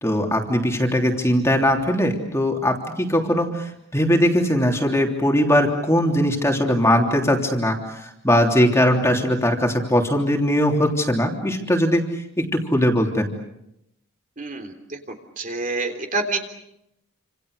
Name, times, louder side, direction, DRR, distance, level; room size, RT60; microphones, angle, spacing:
voice 1, 0.0-13.3, equal, 10° left, 2 dB, 3.2 m, -20 dB
voice 2, 14.4-15.0 15.4-16.4, right 3 dB, 35° right, 5 dB, 3.5 m, -27 dB
29.0 x 27.5 x 6.7 m, 0.82 s
head